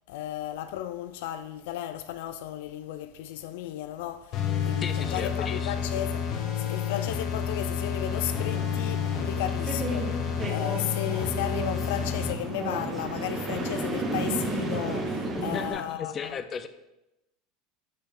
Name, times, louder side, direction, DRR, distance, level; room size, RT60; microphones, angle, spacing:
voice 1, 0.1-6.3 6.6-10.1 10.5-16.3, left 12 dB, 75° left, 0.4 m, -34 dB
sound 1, 4.3-12.3, left 7 dB, 50° left, 0.9 m, -30 dB
voice 2, 4.8-5.9 15.2-16.7, left 7 dB, 30° left, 0.6 m, -36 dB
sound 2, 8.1-15.7, right 2 dB, 25° right, 1.6 m, -33 dB
10.5 x 4.3 x 3.8 m
supercardioid pair, 115°, 0 cm